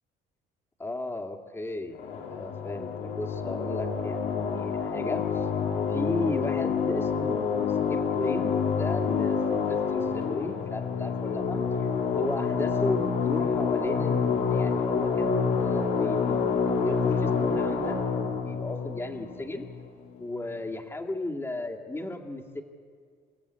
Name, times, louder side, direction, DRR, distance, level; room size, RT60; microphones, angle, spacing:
voice 1, 0.8-5.5 5.9-11.9 12.1-19.7 20.2-22.6, left 2 dB, 15° left, 2 dB, 2.3 m, -35 dB
sound 1, 1.9-20.1, left 6 dB, 85° left, 3.3 m, -28 dB
28.0 x 15.0 x 8.4 m, 2.1 s
cardioid pair, 110°, 17 cm